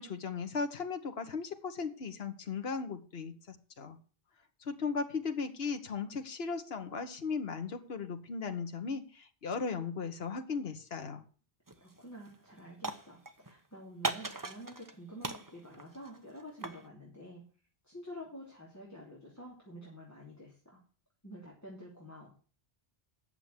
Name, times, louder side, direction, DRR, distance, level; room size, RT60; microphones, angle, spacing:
voice 1, 0.0-4.0 4.6-11.2, left 5 dB, 70° left, 7 dB, 1.4 m, -37 dB
sound 1, 11.7-12.0 12.3-13.5 14.0-14.9 15.2-16.9, right 2 dB, 20° right, 0.9 m, -39 dB
voice 2, 11.8-17.4 17.8-20.8 21.2-22.3, equal, 15° left, -4 dB, 3.0 m, -49 dB
9.0 x 7.0 x 7.8 m, 0.39 s
omnidirectional pair, 1.1 m